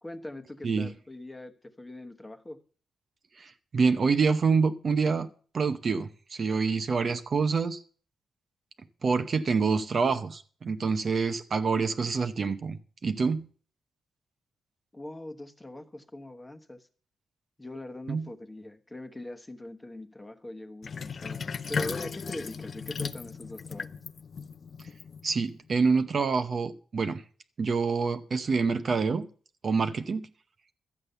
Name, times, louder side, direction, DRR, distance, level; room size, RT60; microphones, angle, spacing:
voice 1, 0.0-2.6 14.9-16.9 17.6-21.4 21.7-23.9, left 1 dB, 10° left, 1.2 m, -42 dB
voice 2, 3.4-5.3 5.5-7.8 9.0-13.5 18.1-18.2 25.2-27.2 27.6-29.3 29.6-30.3, right 5 dB, 40° right, 0.8 m, -26 dB
Sink (filling or washing), 20.8-25.6, left 5 dB, 45° left, 0.6 m, -36 dB
13.0 x 8.5 x 6.7 m
cardioid pair, 120°, 0 cm